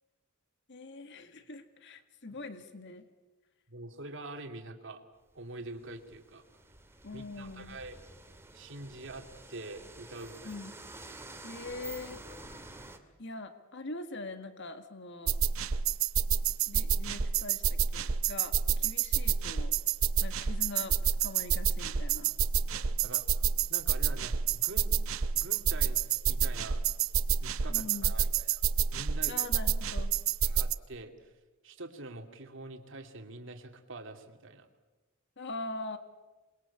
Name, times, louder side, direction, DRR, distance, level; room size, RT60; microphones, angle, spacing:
voice 1, 0.7-3.1 7.0-7.8 10.4-10.7 11.4-12.2 13.2-15.4 16.7-19.7 20.2-22.3 27.7-28.1 29.3-30.2 35.4-36.0, left 2 dB, 60° left, 8 dB, 2.0 m, -43 dB
voice 2, 3.7-5.0 5.3-6.4 7.1-8.0 8.5-10.6 22.7-25.0 25.3-26.8 27.4-28.6 28.9-29.4 30.4-31.1 31.6-34.7, right 2 dB, 65° right, 5 dB, 2.6 m, -45 dB
sound 1, 5.3-13.0, right 2 dB, 10° right, 2.2 m, -49 dB
sound 2, 15.3-30.7, right 7 dB, 85° right, 0.8 m, -29 dB
28.0 x 21.5 x 8.5 m, 1.2 s
head